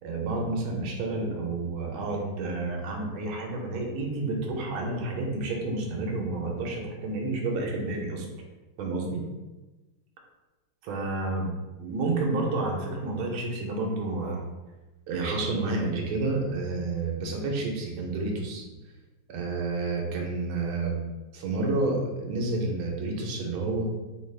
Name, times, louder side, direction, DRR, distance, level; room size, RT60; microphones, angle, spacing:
voice 1, 0.0-8.3 8.8-9.2 10.8-11.5 11.8-14.4 15.1-18.6 19.3-21.0 21.3-23.8, right 2 dB, 80° right, 0 dB, 1.5 m, -30 dB
3.9 x 2.3 x 3.2 m, 1.1 s
omnidirectional pair, 2.3 m